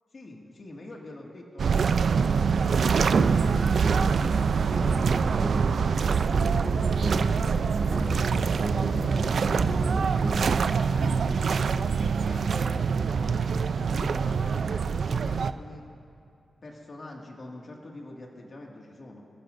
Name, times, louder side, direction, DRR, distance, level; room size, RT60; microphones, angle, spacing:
voice 1, 0.1-3.7 4.1-5.5 6.0-10.5 11.0-11.4 12.1-15.8 16.6-19.2, left 2 dB, 50° left, -1 dB, 2.1 m, -44 dB
sound 1, 1.6-15.5, right 5 dB, 70° right, 0.5 m, -25 dB
sound 2, 3.1-4.2 4.5-5.8 6.1-7.4 7.7-10.6, right 2 dB, 30° right, 2.1 m, -32 dB
27.5 x 14.5 x 2.7 m, 2.5 s
cardioid pair, 80°, 0 cm